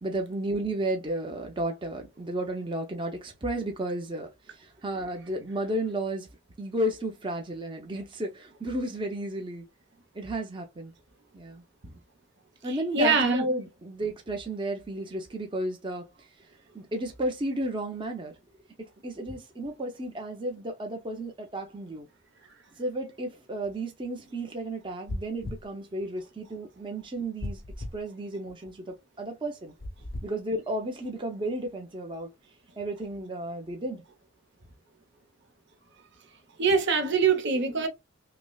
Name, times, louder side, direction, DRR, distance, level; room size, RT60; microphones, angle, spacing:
voice 1, 0.0-4.3 4.6-6.3 6.6-9.7 10.1-10.9 11.3-11.6 12.6-16.0 16.7-18.3 19.0-22.1 22.8-27.6 27.9-29.7 30.2-32.3 32.8-34.0, right 1 dB, 25° right, 0.7 m, -33 dB
voice 2, 12.7-13.5 36.6-37.9, right 4 dB, 60° right, 0.9 m, -24 dB
sound 1, 25.1-25.7 27.4-28.0 29.8-30.3, left 1 dB, 50° left, 0.6 m, -36 dB
5.8 x 2.1 x 2.3 m
head